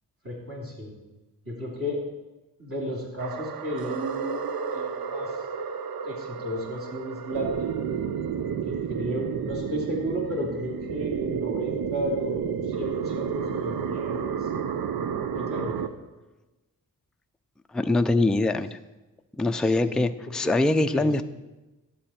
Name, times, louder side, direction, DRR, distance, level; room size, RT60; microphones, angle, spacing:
voice 1, 0.2-0.9 1.4-2.0 2.6-5.5 6.0-7.7 8.6-14.5 15.3-15.9 18.1-18.6 19.6-20.5 20.9-21.2, equal, 40° right, -3 dB, 2.8 m, -34 dB
sound 1, 3.2-15.9, right 7 dB, 80° right, 0.6 m, -31 dB
voice 2, 17.7-18.8 19.4-21.2, left 2 dB, ahead, 8 dB, 0.3 m, -23 dB
11.5 x 7.7 x 4.3 m, 1.1 s
wide cardioid pair, 90°, 35 cm